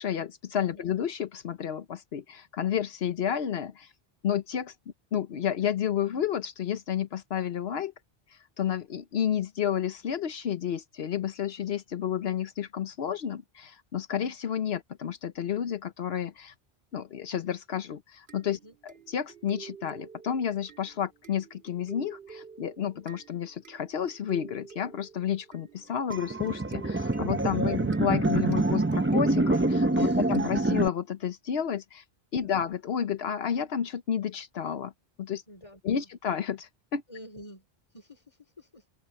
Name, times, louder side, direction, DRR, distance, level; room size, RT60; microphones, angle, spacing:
voice 1, 0.0-3.9 4.2-4.7 5.1-7.9 8.3-16.5 16.9-32.0 32.3-34.9 35.2-35.4 35.8-37.0, left 9 dB, 80° left, 1.1 m, -31 dB
sound 1, 18.3-31.0, right 7 dB, 75° right, 2.3 m, -49 dB
sound 2, 26.1-30.9, right 2 dB, 15° right, 0.6 m, -26 dB
voice 2, 29.9-30.3 32.3-32.6 35.5-36.1 37.1-37.7 37.9-38.8, equal, 30° left, 4.0 m, -49 dB
omnidirectional pair, 1.0 m